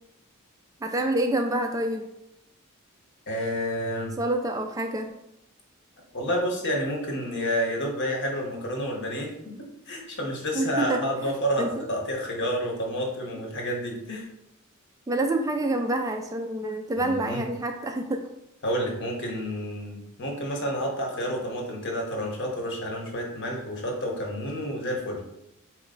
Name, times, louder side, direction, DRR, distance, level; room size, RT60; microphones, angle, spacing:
voice 1, 0.8-2.1 4.2-5.1 10.6-11.0 11.3-11.8 15.1-18.2, right 1 dB, 15° right, 4 dB, 0.3 m, -27 dB
voice 2, 3.3-4.2 6.1-9.3 9.6-14.3 17.0-17.4 18.6-25.2, equal, 55° left, 0 dB, 1.1 m, -29 dB
4.3 x 3.0 x 3.8 m, 0.85 s
head